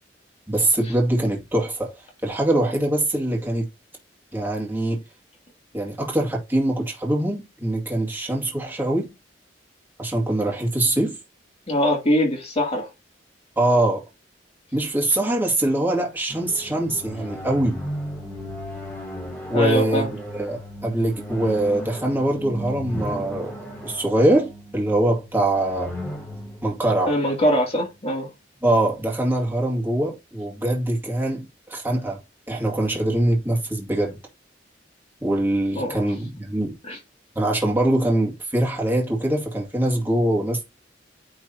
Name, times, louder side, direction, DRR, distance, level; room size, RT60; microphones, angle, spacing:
voice 1, 0.5-1.9 2.2-3.7 4.3-5.0 5.7-9.1 10.0-11.2 13.6-14.0 14.7-17.8 19.5-20.1 20.3-23.5 23.8-25.9 26.6-27.1 28.6-32.2 32.5-34.2 35.2-36.8 37.4-40.7, right 1 dB, 10° right, 2.2 m, -23 dB
voice 2, 11.7-12.9 19.5-20.1 27.0-28.3 35.7-36.0 36.8-37.0, equal, 35° left, 2.6 m, -22 dB
sound 1, 16.3-27.9, left 1 dB, 10° left, 2.4 m, -36 dB
9.5 x 3.9 x 2.8 m
head